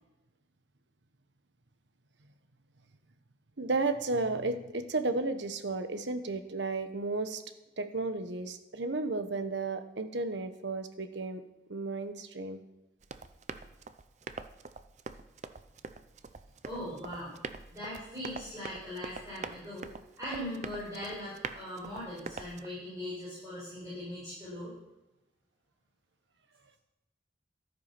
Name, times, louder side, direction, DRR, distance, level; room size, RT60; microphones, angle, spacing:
voice 1, 3.6-7.4 7.8-11.4 11.7-12.6, right 3 dB, 70° right, 9 dB, 1.1 m, -33 dB
Run, 13.0-22.7, right 4 dB, 35° right, 0.5 m, -44 dB
voice 2, 16.6-17.4 17.7-19.9 20.2-24.7, left 1 dB, 15° right, -10 dB, 5.6 m, -40 dB
13.0 x 9.4 x 5.9 m, 0.98 s
head